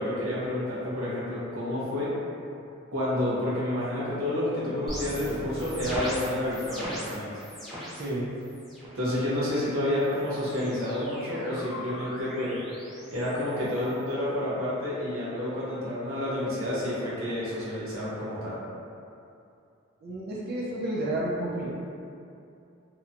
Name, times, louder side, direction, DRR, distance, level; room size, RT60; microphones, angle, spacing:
voice 1, 0.0-2.1 2.9-7.3 8.9-12.6 13.1-18.6, left 1 dB, 80° right, -8 dB, 0.8 m, -29 dB
sound 1, 4.9-8.1 8.4-9.0 10.0-14.1, equal, ahead, 0.7 m, -39 dB
voice 2, 7.9-8.3 20.0-21.7, right 1 dB, 45° right, -6 dB, 0.4 m, -31 dB
2.8 x 2.2 x 2.5 m, 2.6 s
head